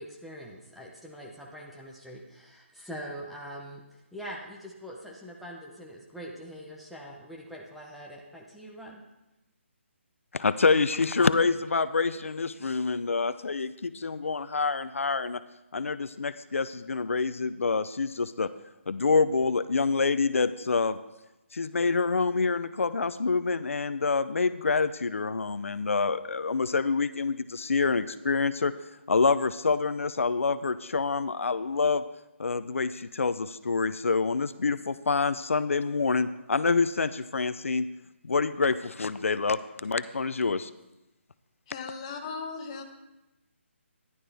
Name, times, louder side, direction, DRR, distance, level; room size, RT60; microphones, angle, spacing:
voice 1, 0.0-3.8 4.1-9.0, equal, ahead, -3 dB, 0.7 m, -43 dB
voice 2, 10.3-15.4 15.7-18.5 18.9-21.0 21.5-28.7 29.1-32.0 32.4-37.9 38.2-40.7, left 4 dB, 90° left, 14 dB, 0.6 m, -27 dB
voice 3, 41.7-42.8, left 5 dB, 25° left, 4 dB, 1.0 m, -37 dB
14.0 x 11.0 x 3.4 m, 0.98 s
hypercardioid pair, 170°, 7 cm